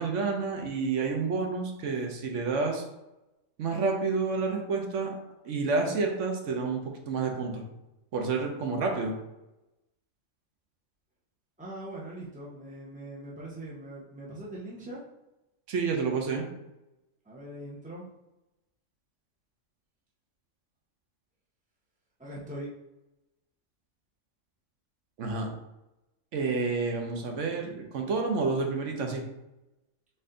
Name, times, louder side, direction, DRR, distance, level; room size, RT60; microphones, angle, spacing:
voice 1, 0.0-2.8 3.6-5.2 5.4-7.6 8.1-9.2 15.7-16.5 25.2-25.5 26.3-29.2, right 4 dB, 65° right, 2 dB, 1.0 m, -29 dB
voice 2, 11.6-15.0 17.2-18.1 22.2-22.7, right 1 dB, 15° right, -6 dB, 0.3 m, -41 dB
4.2 x 2.6 x 3.7 m, 0.95 s
omnidirectional pair, 1.4 m